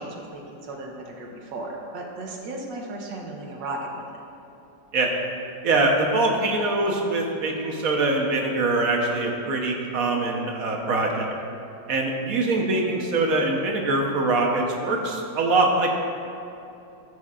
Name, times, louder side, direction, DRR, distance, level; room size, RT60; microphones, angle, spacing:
voice 1, 0.0-4.0, right 2 dB, 75° right, 0 dB, 1.7 m, -35 dB
voice 2, 5.6-11.3 11.9-15.9, right 2 dB, 55° right, 0 dB, 1.3 m, -23 dB
13.0 x 8.1 x 2.5 m, 2.8 s
omnidirectional pair, 2.0 m